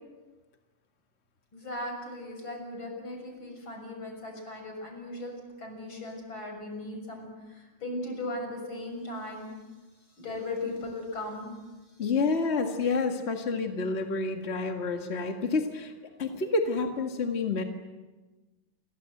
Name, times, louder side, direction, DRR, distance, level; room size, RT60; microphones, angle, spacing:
voice 1, 1.5-9.5 10.2-11.6, left 2 dB, 85° left, 3 dB, 7.6 m, -38 dB
voice 2, 12.0-15.9 16.2-17.6, left 4 dB, 35° left, 4 dB, 2.1 m, -28 dB
29.0 x 23.0 x 7.9 m, 1.2 s
omnidirectional pair, 2.1 m